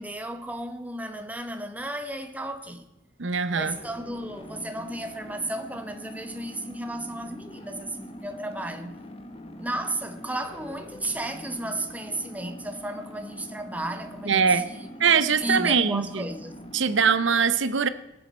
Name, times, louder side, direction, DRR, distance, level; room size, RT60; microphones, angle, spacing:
voice 1, 0.0-2.8 3.5-9.0 9.6-14.9 15.4-16.5, right 1 dB, 10° right, 0.9 m, -34 dB
voice 2, 3.2-3.7 14.3-14.6 15.0-16.2 16.7-17.9, right 6 dB, 70° right, 0.7 m, -22 dB
sound 1, 3.6-17.3, left 1 dB, 30° left, 1.1 m, -43 dB
23.0 x 8.2 x 4.3 m
head